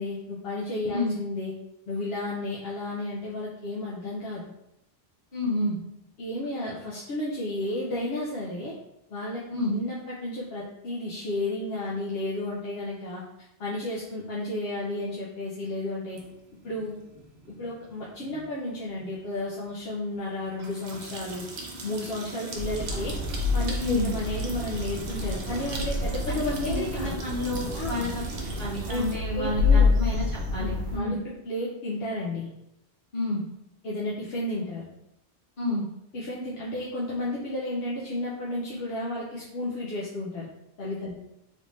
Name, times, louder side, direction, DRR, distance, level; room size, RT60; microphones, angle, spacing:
voice 1, 0.0-1.5 1.9-4.4 6.2-8.7 9.1-9.4 9.7-13.2 13.6-16.2 16.6-17.0 17.6-21.4 21.8-23.1 23.5-27.2 27.7-28.1 28.9-29.0 29.3-29.9 30.6-31.2 31.4-32.5 33.8-34.9 36.1-40.5 40.8-41.1, left 1 dB, 75° left, -6 dB, 0.9 m, -32 dB
voice 2, 5.3-5.8 9.5-9.8 23.8-24.1 26.3-26.4 26.6-28.2 28.6-31.1 33.1-33.4 35.6-35.8, left 2 dB, 55° left, -9 dB, 1.5 m, -29 dB
sound 1, 16.2-29.2, right 3 dB, 85° right, 0.9 m, -41 dB
sound 2, 22.6-31.0, left 3 dB, 55° right, 0.8 m, -28 dB
3.4 x 3.1 x 2.6 m, 0.85 s
omnidirectional pair, 1.1 m